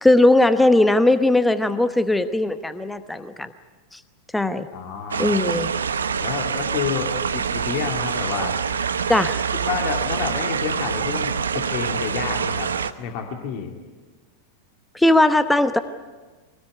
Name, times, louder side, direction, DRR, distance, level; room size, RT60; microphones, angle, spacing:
voice 1, 0.0-3.5 3.9-4.0 4.3-4.7 5.2-5.7 9.1-9.4 14.9-15.8, left 1 dB, 5° left, 11 dB, 1.0 m, -18 dB
voice 2, 4.7-5.3 6.2-8.6 9.5-13.7, left 7 dB, 45° left, 2 dB, 2.6 m, -29 dB
sound 1, 5.1-12.9, right 6 dB, 70° right, 0.9 m, -25 dB
24.5 x 19.0 x 9.4 m, 1.3 s
figure-of-eight pair, 90°, 0 cm